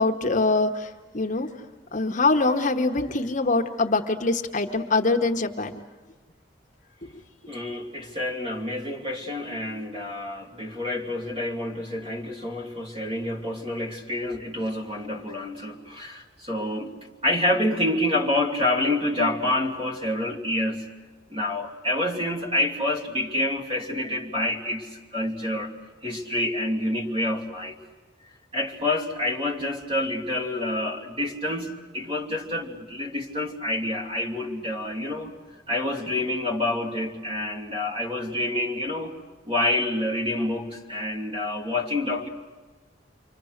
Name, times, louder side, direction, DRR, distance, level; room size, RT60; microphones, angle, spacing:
voice 1, 0.0-1.5 1.9-5.8, left 3 dB, 45° left, 4 dB, 1.1 m, -24 dB
voice 2, 7.5-16.9 17.2-20.9 21.3-25.7 26.0-27.7 28.5-35.3 35.7-39.1 39.4-42.3, left 1 dB, 30° right, 0 dB, 2.9 m, -28 dB
30.0 x 24.5 x 6.6 m, 1.3 s
head